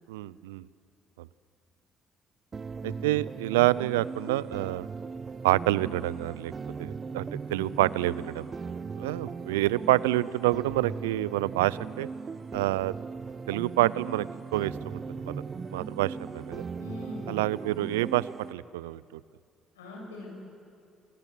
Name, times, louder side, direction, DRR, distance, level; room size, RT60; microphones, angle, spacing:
voice 1, 0.1-0.6 2.8-4.9 5.4-6.5 6.8-8.5 9.0-12.1 12.5-12.9 13.5-14.3 14.5-15.4 15.7-16.6 17.3-19.0, right 17 dB, 85° right, 20 dB, 0.5 m, -27 dB
sound 1, 2.5-18.5, right 5 dB, 40° right, 1.0 m, -38 dB
voice 2, 16.8-17.4 19.7-20.4, left 2 dB, 90° left, -1 dB, 7.6 m, -41 dB
29.0 x 21.0 x 8.4 m, 2.4 s
hypercardioid pair, 55°, 0 cm